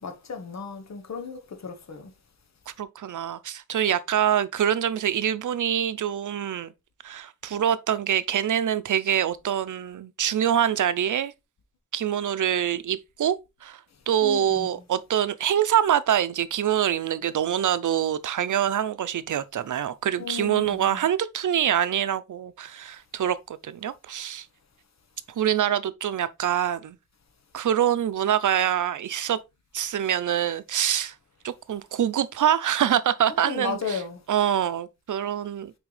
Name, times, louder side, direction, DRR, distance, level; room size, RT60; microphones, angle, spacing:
voice 1, 0.0-2.1 14.2-14.7 20.2-21.0 33.3-34.2, left 5 dB, 65° left, 1.2 m, -34 dB
voice 2, 2.8-6.7 7.0-11.3 11.9-13.4 13.6-13.8 14.1-24.5 25.4-27.0 27.5-29.4 29.7-31.1 31.4-34.0 34.3-35.7, right 10 dB, 85° right, 0.6 m, -25 dB
6.1 x 4.7 x 3.3 m
wide cardioid pair, 85°, 30 cm